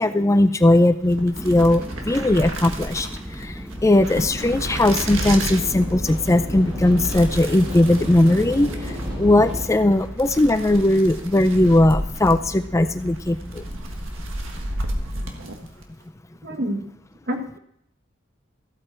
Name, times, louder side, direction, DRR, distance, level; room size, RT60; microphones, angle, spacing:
voice 1, 0.0-3.1 3.8-8.7 9.2-13.6, left 1 dB, 15° left, 10 dB, 0.4 m, -18 dB
sound 1, 1.0-15.9, right 1 dB, 80° right, 1.6 m, -33 dB
sound 2, 1.4-15.4, equal, 5° right, 1.0 m, -36 dB
sound 3, 4.2-9.7, equal, 25° right, 4.0 m, -33 dB
voice 2, 16.4-16.9 17.3-17.6, equal, 50° right, 4 dB, 1.6 m, -27 dB
14.5 x 8.4 x 4.4 m, 0.70 s
head